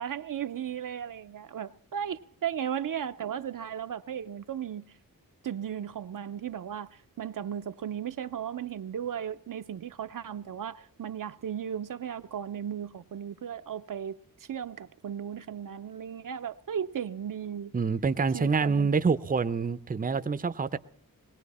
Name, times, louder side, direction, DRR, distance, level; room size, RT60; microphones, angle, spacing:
voice 1, 0.0-4.9 5.4-14.2 14.5-17.7 18.3-18.9, right 9 dB, 65° right, 0.6 m, -36 dB
voice 2, 17.7-20.8, right 5 dB, 25° right, 0.6 m, -26 dB
21.0 x 16.5 x 4.2 m
wide cardioid pair, 115°, 35 cm